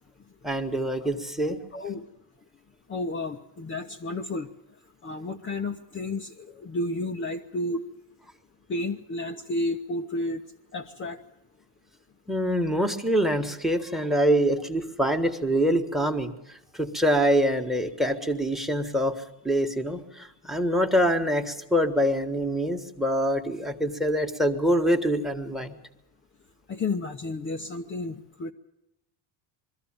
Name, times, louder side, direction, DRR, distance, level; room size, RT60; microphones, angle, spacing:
voice 1, 0.4-1.6 12.3-16.3 16.7-19.2 19.4-25.8, equal, ahead, 8 dB, 1.5 m, -25 dB
voice 2, 1.7-2.0 2.9-4.5 5.0-7.8 8.7-10.4 10.7-11.2 26.7-28.5, left 2 dB, 25° left, 2 dB, 0.8 m, -31 dB
22.0 x 14.0 x 8.8 m, 0.88 s
cardioid pair, 115°, 50 cm